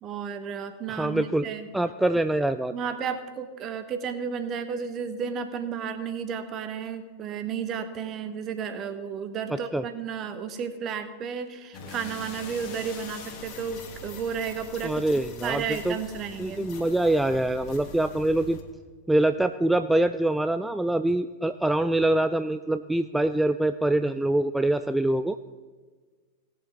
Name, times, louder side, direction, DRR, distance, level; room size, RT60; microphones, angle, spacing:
voice 1, 0.0-1.7 2.7-16.7, right 7 dB, 30° right, 9 dB, 1.1 m, -33 dB
voice 2, 0.9-1.5 1.7-2.7 9.7-9.8 14.8-16.0 16.4-18.6 19.1-25.4, right 1 dB, 5° right, 10 dB, 0.3 m, -24 dB
sound 1, 11.7-18.6, left 4 dB, 40° left, 1.8 m, -43 dB
18.0 x 6.7 x 4.5 m, 1.4 s
figure-of-eight pair, 90°, 0 cm